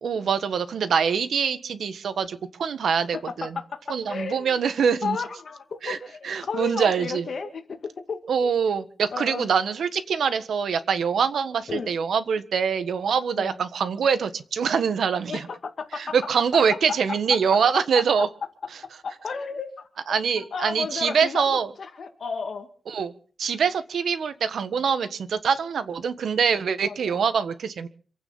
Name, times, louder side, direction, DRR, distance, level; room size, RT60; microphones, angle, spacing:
voice 1, 0.0-3.5 3.9-5.2 5.8-6.0 6.2-7.2 8.3-15.4 16.0-18.3 20.1-21.7 22.9-23.1 23.4-27.9, right 6 dB, 85° right, 11 dB, 1.5 m, -24 dB
voice 2, 3.1-4.6 5.0-8.5 9.1-9.5 11.7-11.9 13.4-13.6 15.3-16.2 17.5-17.8 19.0-19.9 20.4-22.7 26.8-27.2, left 5 dB, 60° left, 5 dB, 2.1 m, -33 dB
26.5 x 9.2 x 5.6 m, 0.43 s
wide cardioid pair, 110°, 0 cm